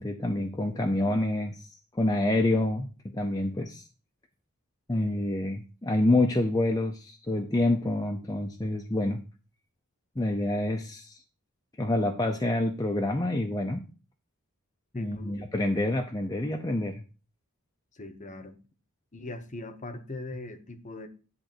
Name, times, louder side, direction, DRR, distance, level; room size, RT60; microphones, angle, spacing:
voice 1, 0.0-1.6 1.9-3.9 4.9-9.2 10.2-11.2 11.8-13.8 14.9-17.0, left 1 dB, 15° left, 0.6 m, -27 dB
voice 2, 14.9-15.4 17.9-18.6 19.1-21.1, left 2 dB, 35° left, 0.9 m, -40 dB
10.0 x 3.9 x 6.0 m
head